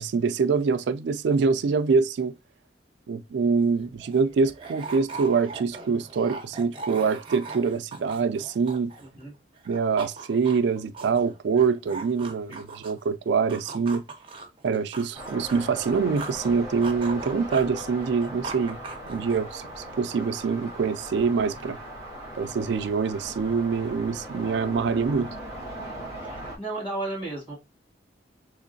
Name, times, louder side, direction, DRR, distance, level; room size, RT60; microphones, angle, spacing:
voice 1, 0.0-2.3 3.1-8.9 9.7-14.0 14.6-18.8 19.1-21.8 22.4-25.3, right 5 dB, 70° right, 0.3 m, -25 dB
sound 1, 3.4-3.5 3.7-9.3 9.6-13.1 13.5-16.5 16.8-19.6, right 4 dB, 30° right, 0.6 m, -40 dB
sound 2, 15.1-26.6, right 1 dB, 60° left, 1.7 m, -39 dB
voice 2, 26.2-27.5, right 2 dB, 25° left, 2.3 m, -34 dB
3.6 x 3.1 x 2.6 m
head